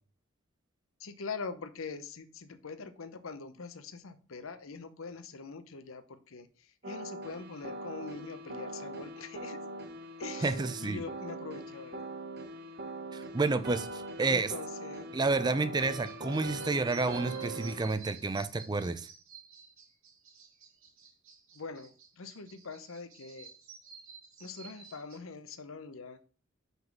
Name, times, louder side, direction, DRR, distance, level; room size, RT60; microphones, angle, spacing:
voice 1, 1.0-9.6 10.2-12.0 14.3-15.1 21.5-23.5 24.4-26.2, left 4 dB, 80° left, 12 dB, 0.7 m, -43 dB
sound 1, 6.8-17.9, right 2 dB, 50° right, 0.9 m, -42 dB
voice 2, 10.4-11.0 13.1-14.5 15.1-19.1, right 3 dB, 20° right, 12 dB, 0.4 m, -30 dB
sound 2, 16.0-25.2, right 6 dB, 80° right, 2.6 m, -53 dB
5.4 x 3.8 x 5.9 m, 0.39 s
head